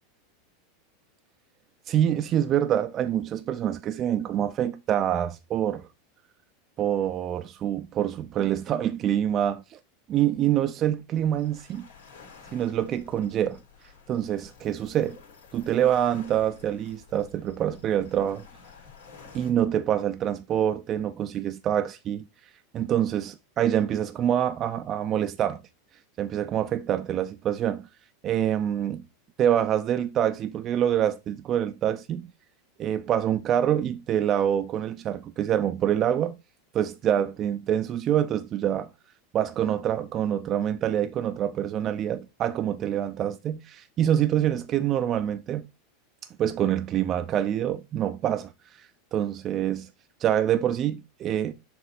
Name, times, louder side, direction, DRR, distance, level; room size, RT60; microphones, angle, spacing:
voice 1, 1.9-5.9 6.8-9.8 10.1-11.9 12.5-13.6 14.1-15.2 15.5-18.5 19.3-22.2 22.7-25.6 26.2-27.9 28.2-29.0 29.4-32.2 32.8-36.4 36.7-38.9 39.3-45.7 46.4-48.5 49.1-49.9 50.2-51.5, right 10 dB, 40° right, 0.6 m, -26 dB
sound 1, 11.2-19.5, left 6 dB, 80° left, 4.0 m, -51 dB
6.9 x 4.0 x 4.2 m
hypercardioid pair, 100°, 0 cm